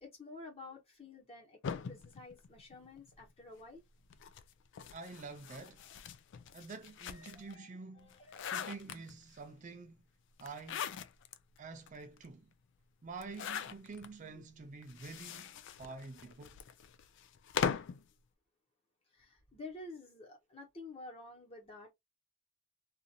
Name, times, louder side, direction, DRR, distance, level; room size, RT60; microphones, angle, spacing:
voice 1, 0.0-1.6 1.9-3.8 7.1-7.7 8.0-8.5 14.3-14.4 19.1-21.9, left 2 dB, 30° left, 1.1 m, -51 dB
sound 1, 1.6-3.2 4.1-7.5 8.0-9.4 10.4-11.4 11.9-12.0 12.2-12.3 13.2-14.1 14.8-18.0, left 7 dB, 55° left, 0.3 m, -41 dB
voice 2, 4.9-5.9 6.5-8.1 8.5-10.0 10.4-11.0 11.6-12.5 13.0-16.6, right 4 dB, 35° right, 0.4 m, -48 dB
2.6 x 2.5 x 2.6 m
head